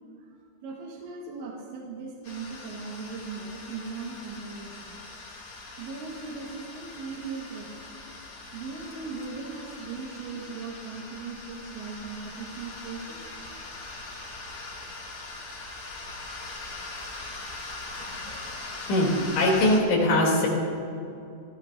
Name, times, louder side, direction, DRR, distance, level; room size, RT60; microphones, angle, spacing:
voice 1, 0.6-5.0 5.8-7.9 8.5-13.3, right 4 dB, 80° right, -3 dB, 3.7 m, -38 dB
sound 1, 2.2-19.8, left 3 dB, 45° left, 2.0 m, -41 dB
voice 2, 18.0-18.4 18.9-20.5, left 1 dB, 85° left, -2 dB, 5.4 m, -22 dB
27.0 x 15.5 x 2.6 m, 2.5 s
omnidirectional pair, 5.2 m